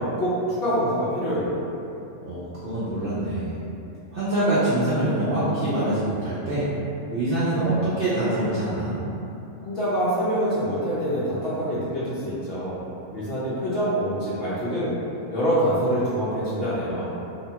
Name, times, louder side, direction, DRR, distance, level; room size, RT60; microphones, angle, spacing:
voice 1, 0.0-1.5 9.6-12.8 13.1-14.9 15.3-17.1, equal, 55° left, -11 dB, 0.7 m, -25 dB
voice 2, 2.2-3.5 4.1-6.7 7.1-9.0, right 1 dB, 80° right, -10 dB, 0.5 m, -24 dB
2.7 x 2.1 x 2.8 m, 2.8 s
omnidirectional pair, 1.6 m